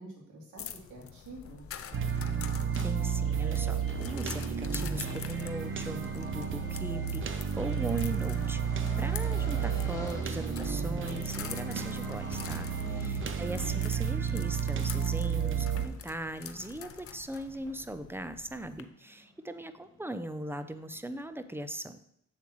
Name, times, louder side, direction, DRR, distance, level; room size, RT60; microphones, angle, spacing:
voice 1, 0.0-1.7 12.8-13.4, right 1 dB, 70° right, -3 dB, 3.0 m, -46 dB
sound 1, 0.6-18.8, left 8 dB, 50° left, 0.6 m, -47 dB
sound 2, 1.8-21.7, left 1 dB, 10° left, 1.5 m, -50 dB
sound 3, 1.9-15.9, right 7 dB, 40° right, 0.7 m, -32 dB
voice 2, 2.8-22.0, right 1 dB, 10° right, 11 dB, 0.5 m, -39 dB
7.5 x 7.1 x 3.1 m, 0.73 s
cardioid pair, 90°, 30 cm